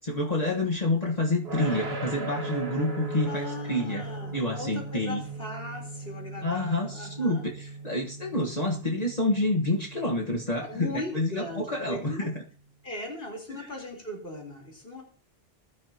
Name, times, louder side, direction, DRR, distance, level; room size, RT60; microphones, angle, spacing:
voice 1, 0.1-4.1 4.3-5.2 6.4-12.4 13.5-13.7, left 1 dB, 40° left, -1 dB, 1.6 m, -28 dB
sound 1, 1.4-12.4, right 2 dB, 75° right, 2.1 m, -38 dB
voice 2, 3.3-7.4 10.6-12.3 12.8-15.0, left 2 dB, 65° left, 0 dB, 4.1 m, -39 dB
21.0 x 12.5 x 2.9 m, 0.38 s
omnidirectional pair, 1.0 m